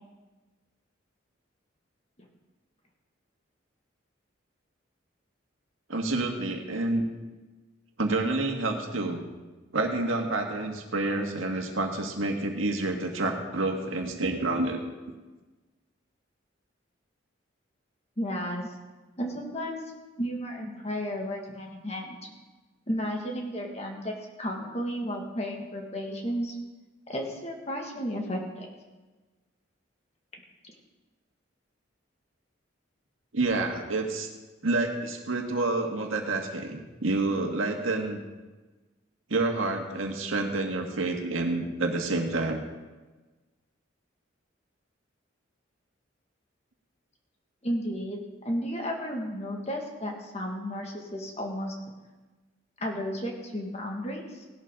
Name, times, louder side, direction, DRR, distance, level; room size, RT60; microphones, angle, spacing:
voice 1, 5.9-7.0 8.0-9.2 9.7-14.9 33.3-34.3 34.6-38.2 39.3-42.6, right 2 dB, 90° right, 2 dB, 1.8 m, -28 dB
voice 2, 18.2-18.7 19.2-19.8 20.2-22.2 22.9-26.5 27.1-28.7 47.6-51.7 52.8-54.5, equal, 30° left, 1 dB, 1.9 m, -33 dB
17.5 x 12.0 x 3.9 m, 1.2 s
head